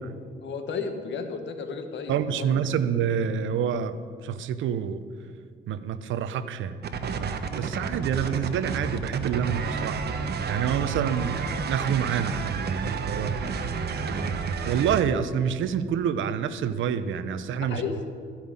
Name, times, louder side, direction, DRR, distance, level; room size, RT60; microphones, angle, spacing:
voice 1, 0.4-2.8 17.6-18.2, left 5 dB, 65° left, 6 dB, 1.4 m, -34 dB
voice 2, 2.1-4.0 4.2-5.0 5.7-6.7 7.1-10.0 10.5-13.3 14.0-14.1 14.6-17.8, right 8 dB, 75° right, 12 dB, 0.7 m, -27 dB
sound 1, 6.8-15.0, right 5 dB, 55° right, 1.0 m, -30 dB
13.0 x 5.7 x 8.8 m, 2.2 s
cardioid pair, 90°, 20 cm